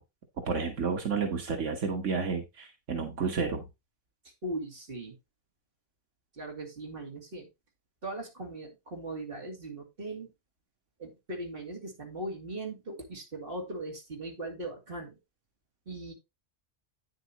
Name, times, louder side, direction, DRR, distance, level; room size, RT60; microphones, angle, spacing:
voice 1, 0.5-3.6, right 5 dB, 85° right, 3 dB, 1.7 m, -31 dB
voice 2, 4.2-5.1 6.3-7.5 8.0-10.3 11.0-15.2 15.9-16.1, right 1 dB, 50° right, 1 dB, 2.8 m, -39 dB
9.3 x 7.7 x 2.9 m, 0.23 s
omnidirectional pair, 1.2 m